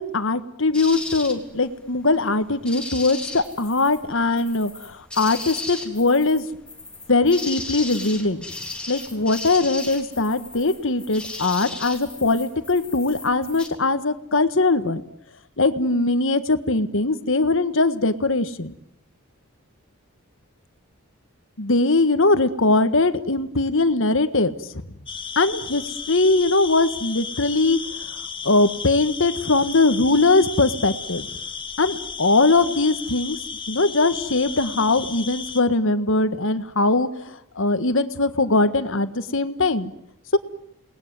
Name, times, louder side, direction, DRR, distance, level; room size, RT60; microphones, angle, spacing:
voice 1, 0.0-6.5 7.1-8.4 8.9-15.0 15.6-18.7 21.6-24.5 25.4-27.8 28.4-31.3 31.8-33.4 33.7-39.9 40.3-40.4, left 3 dB, 60° left, 11 dB, 1.6 m, -21 dB
sound 1, 0.7-13.7, left 2 dB, 5° left, 3.3 m, -36 dB
sound 2, 25.1-35.6, left 6 dB, 25° left, 1.5 m, -34 dB
29.0 x 20.0 x 9.6 m, 0.77 s
head